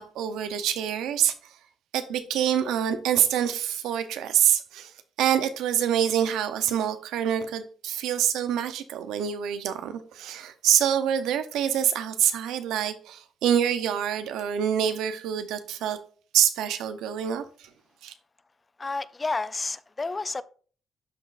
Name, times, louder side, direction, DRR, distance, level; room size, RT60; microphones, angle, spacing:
voice 1, 0.0-1.3 1.9-4.9 5.2-16.0 16.3-17.7 18.0-18.1, right 9 dB, 90° right, 0.7 m, -26 dB
voice 2, 18.8-20.4, left 3 dB, 25° left, 0.4 m, -30 dB
12.0 x 4.0 x 2.5 m
cardioid pair, 90°, 0 cm